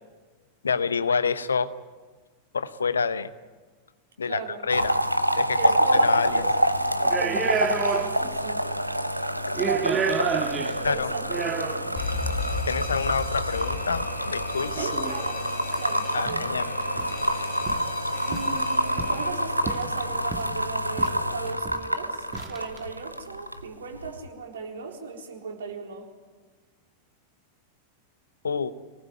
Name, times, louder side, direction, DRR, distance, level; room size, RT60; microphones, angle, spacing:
voice 1, 0.6-1.7 2.5-3.3 4.2-5.0 5.3-6.4 9.5-9.6 10.8-11.1 12.6-14.9 16.1-16.7 28.4-28.7, left 5 dB, 70° left, 14 dB, 1.0 m, -27 dB
voice 2, 4.3-4.6 5.5-6.5 6.9-8.7 9.6-11.4 14.8-15.4 15.8-16.5 18.3-26.1, right 5 dB, 65° right, 1 dB, 4.0 m, -36 dB
sound 1, 4.7-23.6 23.9-24.3, equal, 90° right, 0.9 m, -27 dB
sound 2, 6.2-6.5 7.0-8.4 8.7-8.8 9.4-12.0 13.0-13.1 14.7-15.2 15.7-15.8 16.1-16.5 16.8-17.2 17.7-17.9 18.3-19.3 19.7-20.6 21.0-21.2 21.5-21.9 22.3-22.8, right 6 dB, 25° right, 1.8 m, -30 dB
Alarm, 12.0-19.7, left 4 dB, 35° left, 2.9 m, -36 dB
24.5 x 19.0 x 9.5 m, 1.4 s
figure-of-eight pair, 90°, 0 cm